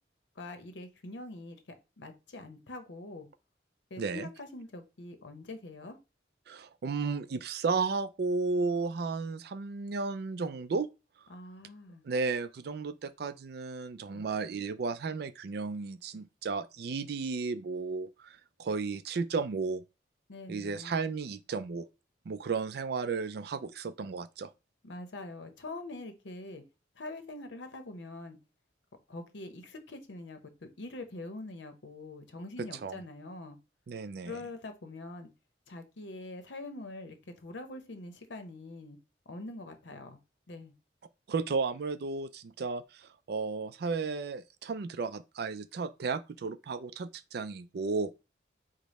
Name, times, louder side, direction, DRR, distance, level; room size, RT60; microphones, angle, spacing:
voice 1, 0.4-1.6 2.0-3.3 3.9-6.0 11.3-12.0 14.1-14.3 20.3-21.0 24.8-26.6 27.0-28.4 29.1-33.6 34.2-35.3 35.7-37.2 37.4-39.0 39.3-40.2 40.5-40.7, left 2 dB, 75° left, 0.7 m, -44 dB
voice 2, 4.0-4.3 6.5-10.9 12.0-19.8 20.5-21.9 22.3-24.5 32.6-33.0 33.9-34.4 41.3-48.1, right 4 dB, 60° right, 0.4 m, -34 dB
5.0 x 2.1 x 4.1 m
head